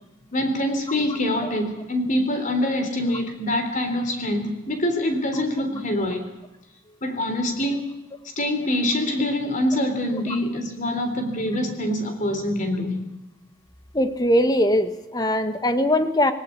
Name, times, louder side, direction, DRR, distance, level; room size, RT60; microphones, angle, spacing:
voice 1, 0.3-6.3 7.0-7.8 8.4-13.1, left 1 dB, 40° left, 3.6 m, -25 dB
voice 2, 13.9-16.3, left 1 dB, 20° left, 1.5 m, -21 dB
19.5 x 18.5 x 8.5 m
head